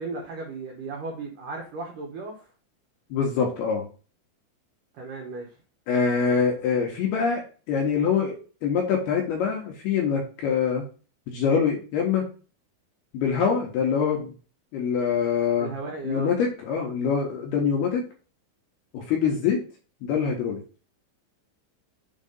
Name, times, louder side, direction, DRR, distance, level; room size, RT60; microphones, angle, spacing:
voice 1, 0.0-2.5 4.9-5.5 15.6-16.3, right 3 dB, 75° right, 0 dB, 1.9 m, -35 dB
voice 2, 3.1-3.8 5.9-7.4 7.7-8.4 8.6-10.8 11.3-12.3 13.1-14.3 14.7-15.7 16.0-18.1 18.9-19.6 20.0-20.6, left 6 dB, 70° left, 0 dB, 2.6 m, -24 dB
7.4 x 3.3 x 5.3 m, 0.37 s
omnidirectional pair, 5.6 m